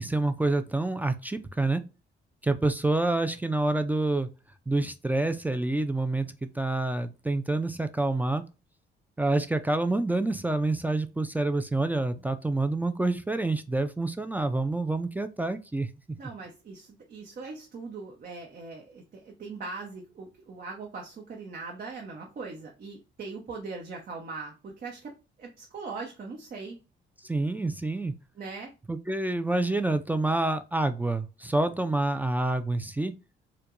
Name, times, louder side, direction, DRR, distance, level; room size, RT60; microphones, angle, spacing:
voice 1, 0.0-1.8 2.4-4.3 4.7-8.4 9.2-15.9 27.2-28.1 28.9-33.1, right 2 dB, 10° right, 9 dB, 0.3 m, -27 dB
voice 2, 16.2-26.8 28.4-28.7, right 4 dB, 45° right, 0 dB, 0.8 m, -40 dB
4.4 x 2.2 x 2.5 m, 0.30 s
cardioid pair, 90°, 20 cm